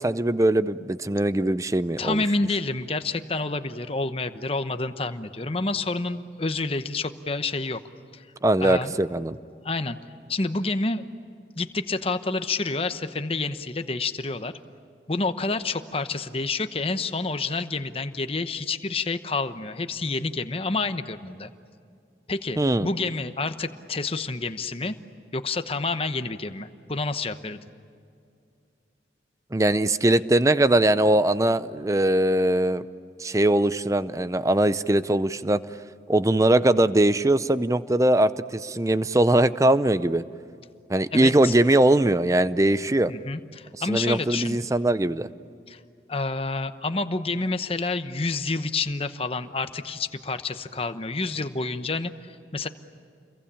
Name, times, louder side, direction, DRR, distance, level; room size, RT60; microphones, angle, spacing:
voice 1, 0.0-2.2 8.4-9.4 22.6-22.9 29.5-32.9 33.2-35.6 36.1-40.2 40.9-43.1 43.9-45.3, right 1 dB, 20° right, 14 dB, 0.6 m, -21 dB
voice 2, 2.0-7.8 8.1-8.3 8.6-8.9 9.6-10.0 10.3-11.0 11.6-14.5 15.1-21.5 22.3-24.9 25.3-27.6 41.1-41.5 43.1-44.6 45.7-45.8 46.1-52.7, left 3 dB, 30° left, 10 dB, 1.0 m, -28 dB
29.0 x 22.5 x 8.9 m, 2.4 s
head